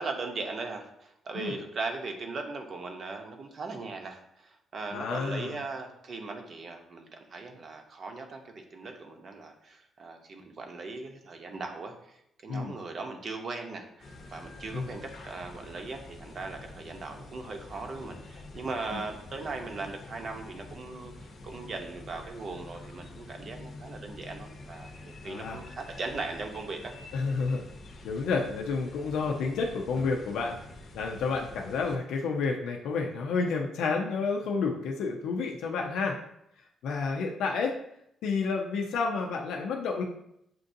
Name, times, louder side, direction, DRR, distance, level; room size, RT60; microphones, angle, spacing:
voice 1, 0.0-26.9, right 3 dB, 45° right, 4 dB, 0.7 m, -39 dB
voice 2, 4.9-5.6 12.5-12.7 14.7-14.9 18.9-19.0 25.2-25.6 27.1-27.6 28.0-30.6 30.9-36.2 36.8-37.7 38.2-40.0, left 4 dB, 90° left, 1 dB, 0.5 m, -30 dB
sound 1, 14.0-32.0, left 2 dB, 55° left, 0.7 m, -47 dB
7.5 x 2.6 x 2.6 m, 0.76 s
cardioid pair, 120°, 0 cm